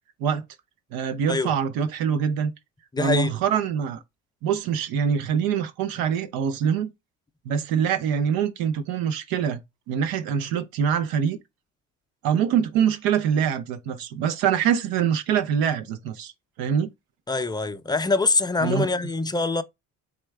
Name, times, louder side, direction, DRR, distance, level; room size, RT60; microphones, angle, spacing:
voice 1, 0.9-2.5 3.0-4.0 4.4-6.9 7.5-9.6 9.9-11.4 12.2-16.3 16.6-16.9 18.6-18.9, right 8 dB, 85° right, 0.7 m, -24 dB
voice 2, 2.9-3.3 17.3-19.6, left 3 dB, 10° left, 0.4 m, -24 dB
4.4 x 3.7 x 3.2 m
cardioid pair, 105°, 35 cm